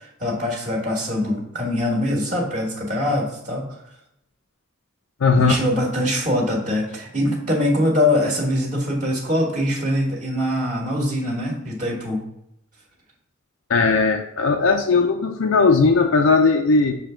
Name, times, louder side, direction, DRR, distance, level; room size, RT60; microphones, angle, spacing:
voice 1, 0.0-3.8 5.4-12.2, left 1 dB, 35° right, -3 dB, 1.5 m, -23 dB
voice 2, 5.2-5.6 13.7-17.0, left 4 dB, 80° left, 4 dB, 0.5 m, -18 dB
6.8 x 3.3 x 5.0 m, 0.78 s
head